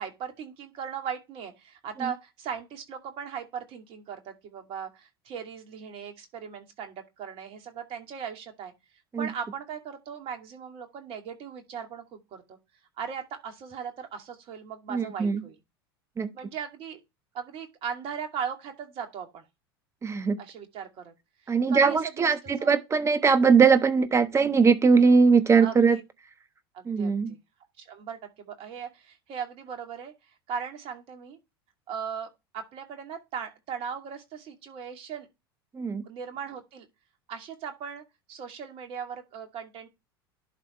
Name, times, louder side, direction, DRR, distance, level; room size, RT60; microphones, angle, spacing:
voice 1, 0.0-8.7 9.2-12.6 13.0-15.6 16.3-17.0 17.3-19.5 20.4-21.1 21.4-22.8 25.6-26.0 26.7-27.4 27.8-30.1 30.5-31.4 31.9-35.3 36.1-36.9 37.3-38.0 38.3-39.9, right 7 dB, 50° right, 2.4 m, -38 dB
voice 2, 14.9-15.4 16.2-16.3 20.0-20.4 21.5-26.0 26.9-27.3 35.7-36.0, right 5 dB, 25° right, 1.2 m, -21 dB
11.5 x 4.1 x 3.2 m
hypercardioid pair, 85°, 13 cm